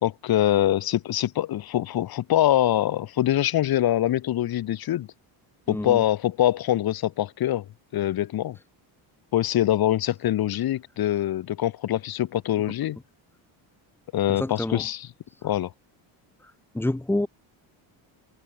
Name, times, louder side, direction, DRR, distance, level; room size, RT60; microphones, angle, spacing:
voice 1, 0.0-5.1 5.7-7.7 7.9-8.6 9.3-13.0 14.1-15.1 15.4-15.7, left 13 dB, 50° left, 2.9 m, -24 dB
voice 2, 5.7-6.0 14.3-14.8 16.7-17.3, left 1 dB, 5° left, 1.5 m, -27 dB
cardioid pair, 165°, 47 cm